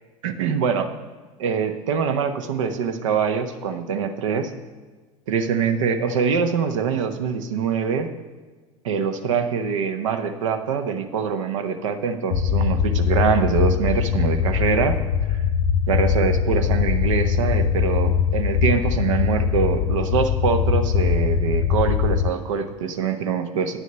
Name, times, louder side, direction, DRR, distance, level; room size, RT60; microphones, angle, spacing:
voice 1, 0.2-0.9 1.4-4.5 5.3-8.1 8.8-15.0 15.9-23.8, right 6 dB, 70° right, 8 dB, 0.9 m, -24 dB
sound 1, 12.3-22.3, left 7 dB, 60° left, 0.5 m, -21 dB
9.6 x 6.3 x 6.7 m, 1.3 s
figure-of-eight pair, 75°, 17 cm